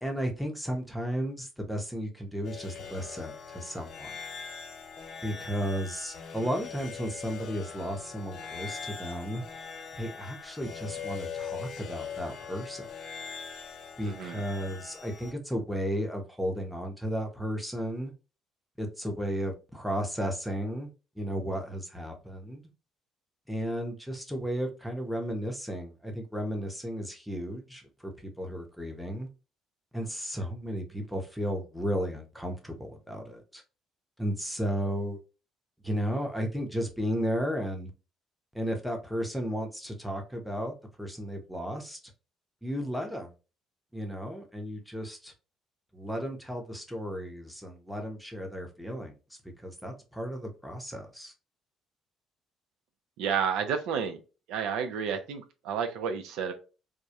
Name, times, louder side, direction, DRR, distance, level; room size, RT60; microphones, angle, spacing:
voice 1, 0.0-4.1 5.2-9.4 10.0-12.9 14.0-18.1 18.8-20.9 21.2-22.6 23.5-29.3 29.9-33.6 34.2-35.2 35.8-37.9 38.5-42.0 42.6-43.3 43.9-45.3 45.9-49.1 49.6-51.3, equal, ahead, 0.7 m, -34 dB
sound 1, 2.4-15.3, left 6 dB, 55° left, 0.5 m, -42 dB
voice 2, 14.0-14.4 53.2-54.2 54.5-56.5, right 7 dB, 80° right, 0.4 m, -31 dB
2.3 x 2.1 x 2.7 m
cardioid pair, 90°, 0 cm